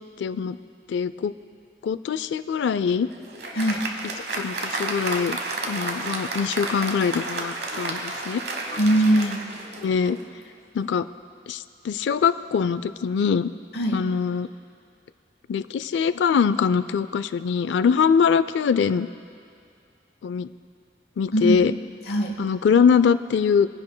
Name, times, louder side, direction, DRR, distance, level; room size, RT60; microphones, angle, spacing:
voice 1, 0.2-0.6 0.9-1.3 1.8-3.1 4.3-5.4 5.7-8.4 9.8-10.2 10.7-11.1 11.5-13.5 13.9-14.5 15.5-19.1 20.2-20.5 21.2-21.7 22.4-23.7, left 6 dB, 85° left, 14 dB, 0.3 m, -23 dB
Applause, 2.8-10.3, right 2 dB, 60° right, 1.1 m, -31 dB
voice 2, 3.5-3.9 8.8-9.4 13.7-14.0 21.3-21.7 22.1-22.4, right 1 dB, 65° left, 2 dB, 0.9 m, -21 dB
23.5 x 10.5 x 2.2 m, 2.3 s
head